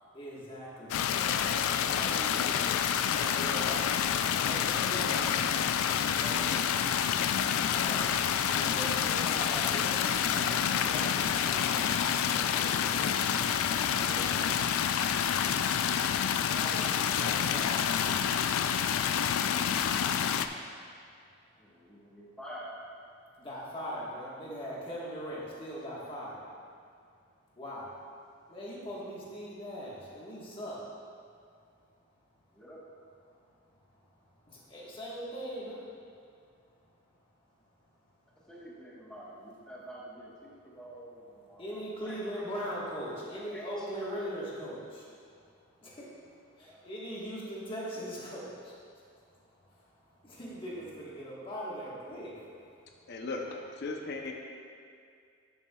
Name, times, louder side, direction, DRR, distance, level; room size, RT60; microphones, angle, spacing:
voice 1, 0.0-13.7 14.0-14.7 16.4-18.3 21.0-21.1 21.5-21.6 23.3-26.5 27.6-27.9 28.5-31.0 31.4-32.4 33.3-36.0 36.5-36.8 37.1-37.2 37.7-38.5 41.5-53.2, equal, 25° left, -6 dB, 1.5 m, -42 dB
sound 1, 0.9-20.5, left 8 dB, 80° left, 0.3 m, -28 dB
voice 2, 21.5-22.7 30.8-30.9 32.5-32.8 38.5-42.2 42.5-42.7 43.3-44.2 46.4-46.8, equal, 5° left, -6 dB, 1.3 m, -48 dB
voice 3, 53.1-53.5 53.8-54.3, left 3 dB, 55° left, 1 dB, 0.7 m, -36 dB
10.5 x 7.0 x 2.4 m, 2.3 s
head